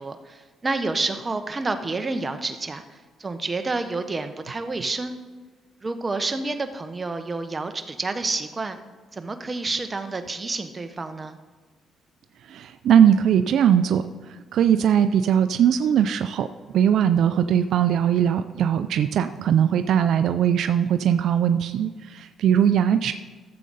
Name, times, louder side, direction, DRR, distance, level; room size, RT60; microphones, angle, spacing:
voice 1, 0.0-5.1 5.8-8.8 9.1-11.4, right 3 dB, 25° right, 8 dB, 0.9 m, -29 dB
voice 2, 12.5-14.1 14.5-16.5 16.7-23.1, right 9 dB, 70° right, 10 dB, 0.3 m, -20 dB
13.0 x 7.5 x 4.0 m, 1.4 s
cardioid pair, 90°, 0 cm